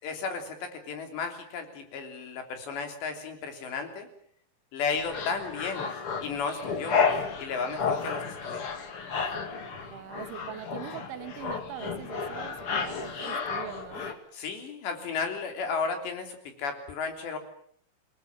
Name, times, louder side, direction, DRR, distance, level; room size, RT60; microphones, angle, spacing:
voice 1, 0.0-4.1 4.7-5.9 6.2-7.0 7.4-8.6 14.3-17.4, left 5 dB, 65° left, 6 dB, 5.4 m, -34 dB
sound 1, 4.9-14.1, left 5 dB, 40° left, 2.0 m, -32 dB
voice 2, 9.9-14.1, right 13 dB, 75° right, 10 dB, 3.4 m, -42 dB
27.0 x 20.5 x 7.4 m, 0.62 s
omnidirectional pair, 5.6 m